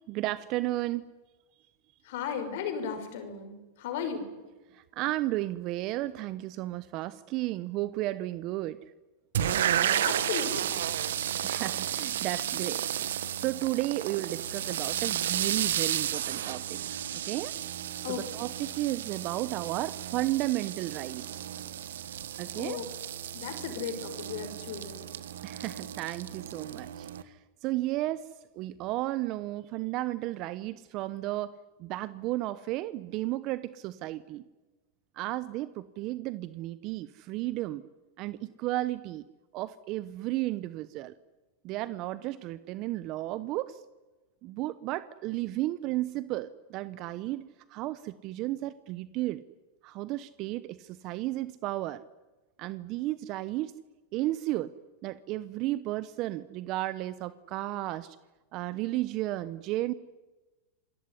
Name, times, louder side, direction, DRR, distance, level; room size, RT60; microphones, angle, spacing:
voice 1, 0.1-1.1 4.7-8.8 11.4-17.5 18.1-21.3 22.4-22.8 25.4-28.3 28.6-34.4 35.2-37.8 38.2-39.2 39.5-41.1 41.6-43.8 44.4-49.4 49.8-52.0 52.6-53.7 54.1-54.7 55.0-58.2 58.5-59.9, right 16 dB, 45° right, 16 dB, 0.9 m, -33 dB
voice 2, 2.0-4.3 9.8-10.9 18.0-18.4 22.5-22.9 23.3-25.1, left 7 dB, 65° left, 8 dB, 6.0 m, -36 dB
sound 1, 9.3-27.2, right 10 dB, 80° right, 1.4 m, -33 dB
27.5 x 19.0 x 10.0 m, 1.2 s
hypercardioid pair, 120°, 0 cm